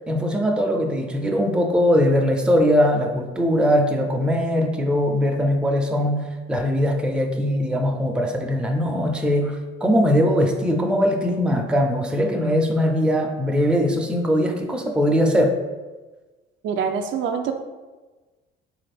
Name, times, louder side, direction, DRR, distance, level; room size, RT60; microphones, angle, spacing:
voice 1, 0.1-15.5, equal, 5° right, 2 dB, 0.4 m, -21 dB
voice 2, 16.6-17.5, right 6 dB, 65° right, 5 dB, 0.4 m, -25 dB
3.6 x 2.5 x 3.3 m, 1.2 s
cardioid pair, 95°, 21 cm